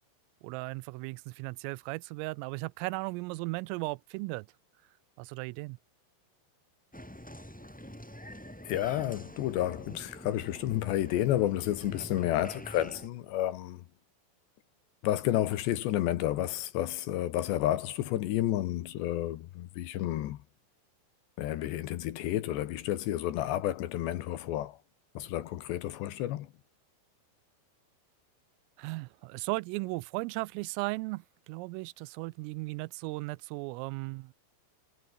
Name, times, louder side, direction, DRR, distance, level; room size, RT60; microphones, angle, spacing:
voice 1, 0.4-4.5 5.2-5.8 28.8-34.3, right 24 dB, 90° right, 3.3 m, -36 dB
Applause, 6.9-13.1, equal, 5° left, 1.7 m, -46 dB
voice 2, 8.6-13.8 15.0-20.4 21.4-24.8 25.1-26.5, left 13 dB, 70° left, 3.1 m, -31 dB
omnidirectional pair, 5.8 m